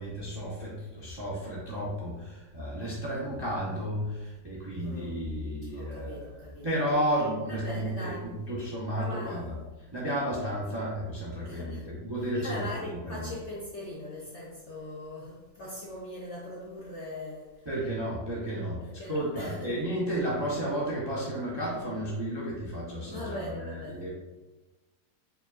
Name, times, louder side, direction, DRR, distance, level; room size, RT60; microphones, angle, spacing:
voice 1, 0.0-9.6 9.9-13.3 17.6-24.1, equal, 40° right, -7 dB, 0.3 m, -32 dB
voice 2, 4.8-5.2 5.6-6.7 7.5-8.4 8.9-9.5 11.4-11.9 12.4-17.7 18.8-19.8 23.1-24.1, left 1 dB, 80° left, -4 dB, 0.6 m, -41 dB
4.6 x 3.4 x 2.4 m, 1.2 s
omnidirectional pair, 2.0 m